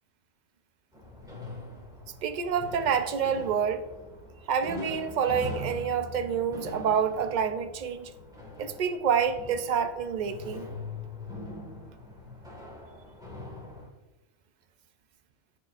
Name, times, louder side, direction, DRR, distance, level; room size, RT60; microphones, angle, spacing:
sound 1, 0.9-13.9, left 1 dB, 5° right, 1.8 m, -42 dB
voice 1, 2.2-3.9 4.5-8.1 8.6-10.7, right 7 dB, 55° right, 0.5 m, -28 dB
13.5 x 4.9 x 2.5 m
omnidirectional pair, 1.2 m